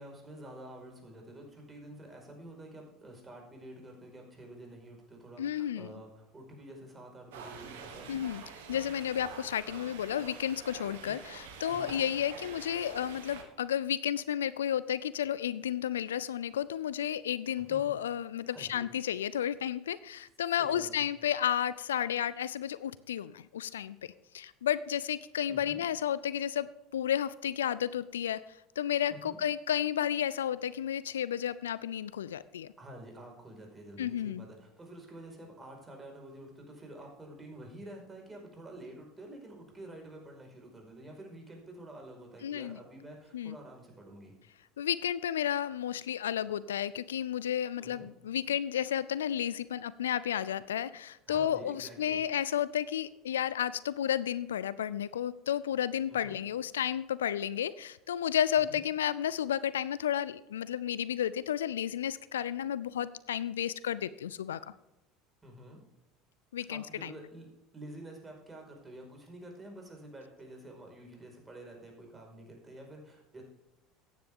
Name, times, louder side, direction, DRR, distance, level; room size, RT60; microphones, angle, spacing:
voice 1, 0.0-8.2 11.0-11.1 11.7-12.0 17.7-17.9 18.5-18.9 20.5-20.9 25.5-25.8 29.1-29.4 32.8-44.3 47.8-48.1 51.3-52.2 56.1-56.4 58.7-58.8 65.4-65.8 66.7-67.5 67.7-73.4, right 1 dB, 20° right, 1 dB, 5.0 m, -49 dB
voice 2, 5.4-5.9 8.1-8.4 8.7-24.0 24.3-28.4 28.8-32.7 34.0-34.4 42.4-42.8 43.3-43.6 44.8-64.6 66.5-67.1, left 10 dB, 85° left, 18 dB, 0.4 m, -32 dB
sound 1, 7.3-13.4, right 6 dB, 75° right, 1.7 m, -46 dB
14.5 x 9.7 x 3.7 m, 0.95 s
hypercardioid pair, 70°, 0 cm